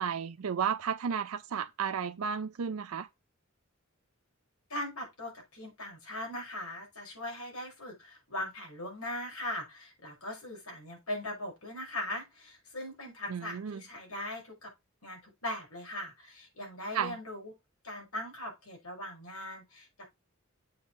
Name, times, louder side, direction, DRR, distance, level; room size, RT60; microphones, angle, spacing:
voice 1, 0.0-3.1 13.3-13.8 16.9-17.1, right 7 dB, 80° right, 0.5 m, -33 dB
voice 2, 4.7-14.7 15.0-17.5 17.8-20.1, left 1 dB, 80° left, 5.9 m, -40 dB
7.9 x 5.4 x 4.3 m
head